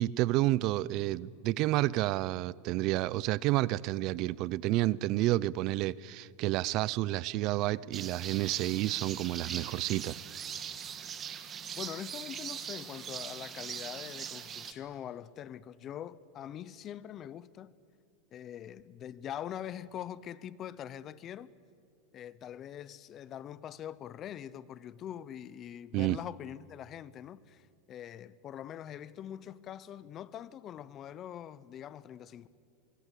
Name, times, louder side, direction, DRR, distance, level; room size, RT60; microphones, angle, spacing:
voice 1, 0.0-10.2 25.9-26.2, right 17 dB, 50° right, 0.5 m, -30 dB
sound 1, 7.9-14.7, right 8 dB, 30° right, 1.7 m, -41 dB
voice 2, 11.8-17.7 18.3-21.5 22.1-32.5, left 10 dB, 35° left, 0.8 m, -43 dB
24.0 x 24.0 x 8.4 m
supercardioid pair, 130°, 0 cm